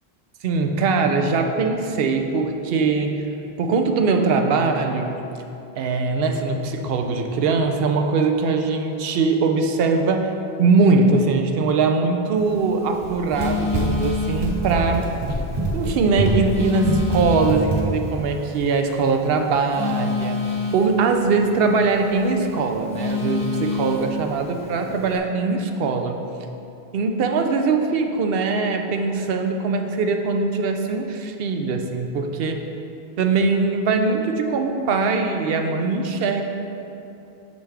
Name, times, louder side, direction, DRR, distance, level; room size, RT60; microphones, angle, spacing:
voice 1, 0.4-3.3 3.6-5.2 5.8-10.3 10.6-15.1 15.7-20.4 20.7-26.2 26.9-32.6 33.2-36.4, right 4 dB, 70° right, 4 dB, 0.7 m, -21 dB
Telephone, 12.4-25.2, left 3 dB, 5° left, 0.9 m, -30 dB
Run, 12.9-18.2, right 1 dB, 35° right, 0.4 m, -26 dB
5.8 x 5.2 x 3.4 m, 2.7 s
omnidirectional pair, 1.0 m